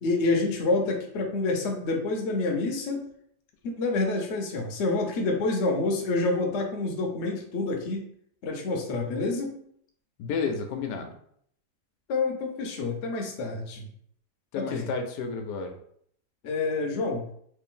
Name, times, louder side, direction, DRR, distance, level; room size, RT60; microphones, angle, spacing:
voice 1, 0.0-3.1 3.6-8.1 8.4-9.6 12.1-13.9 14.5-14.9 16.4-17.3, left 3 dB, 55° left, 1 dB, 0.8 m, -28 dB
voice 2, 10.2-11.2 14.5-15.7, left 5 dB, 90° left, 5 dB, 1.2 m, -31 dB
3.3 x 2.6 x 3.7 m, 0.66 s
omnidirectional pair, 1.8 m